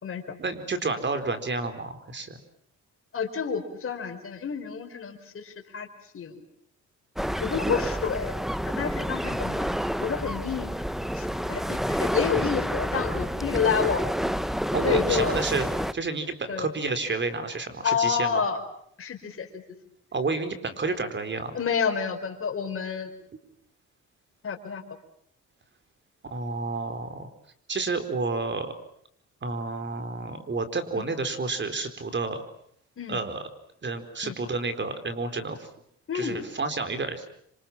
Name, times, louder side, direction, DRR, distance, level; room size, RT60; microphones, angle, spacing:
voice 1, 0.4-2.4 14.7-15.7 15.9-18.4 20.1-21.6 26.3-27.3 27.7-28.7 29.4-32.4 33.1-33.4 33.8-35.7 36.1-37.2, right 3 dB, 40° right, 9 dB, 4.3 m, -30 dB
voice 2, 3.1-5.9 6.1-6.4 7.4-8.3 8.7-9.6 10.0-10.7 11.1-14.0 14.8-15.4 16.5-16.7 17.8-18.6 19.0-19.6 21.5-23.1 24.4-24.8 30.9-31.0 33.0-33.2 34.2-34.3 36.1-36.4, left 6 dB, 45° left, 3 dB, 4.8 m, -29 dB
sound 1, 7.2-15.9, equal, ahead, 1.0 m, -29 dB
27.0 x 26.5 x 7.4 m, 0.68 s
cardioid pair, 90°, 30 cm